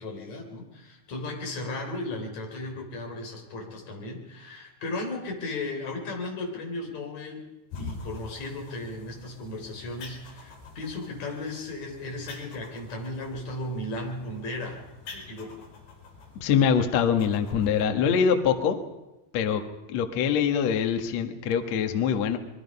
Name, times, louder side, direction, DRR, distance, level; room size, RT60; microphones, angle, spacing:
voice 1, 0.0-7.4 7.7-14.8 15.1-15.5, left 2 dB, 35° left, 1 dB, 4.7 m, -35 dB
sound 1, 7.7-17.8, left 4 dB, 55° left, 6.9 m, -46 dB
voice 2, 16.4-18.8 19.3-19.6 19.9-22.4, left 7 dB, 85° left, 6 dB, 1.5 m, -24 dB
27.5 x 22.5 x 5.5 m, 1.0 s
omnidirectional pair, 6.0 m